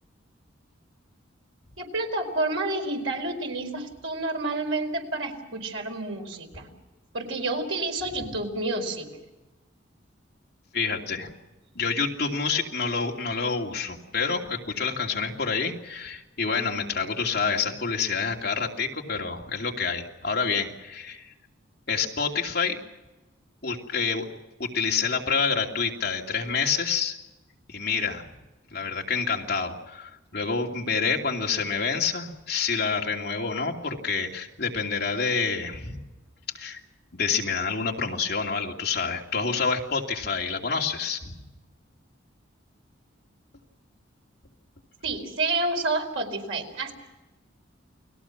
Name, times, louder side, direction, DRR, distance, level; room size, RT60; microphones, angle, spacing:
voice 1, 1.8-6.7 7.1-9.1 45.0-46.9, right 2 dB, 90° right, 3 dB, 4.6 m, -29 dB
voice 2, 10.7-11.3 11.7-21.3 21.9-22.8 23.6-24.3 24.6-27.2 27.7-28.2 28.7-36.0 36.5-36.8 37.1-41.4, left 5 dB, 50° left, 0 dB, 2.9 m, -28 dB
29.5 x 20.0 x 6.1 m, 1.0 s
head